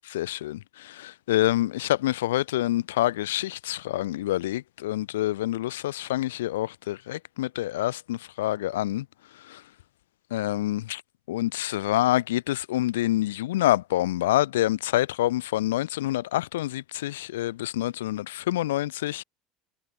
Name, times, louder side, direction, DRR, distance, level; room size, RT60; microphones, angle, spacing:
voice 1, 0.1-9.0 9.5-9.6 10.3-11.0 11.3-19.2, left 15 dB, 70° left, 1.3 m, -27 dB
figure-of-eight pair, 65°, 0 cm